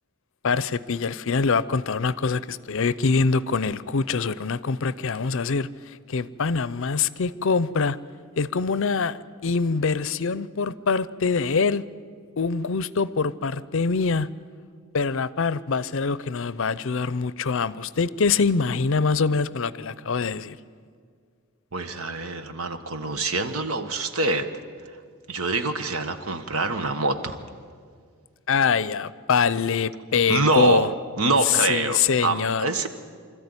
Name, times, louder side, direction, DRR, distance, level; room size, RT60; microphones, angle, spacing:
voice 1, 0.4-8.0 8.4-11.8 12.4-14.3 14.9-20.6 28.5-30.9 31.4-32.7, left 5 dB, 60° left, 0.6 m, -24 dB
voice 2, 21.7-24.5 25.3-27.4 30.3-32.9, right 2 dB, 75° right, 1.4 m, -25 dB
25.5 x 13.5 x 9.7 m
head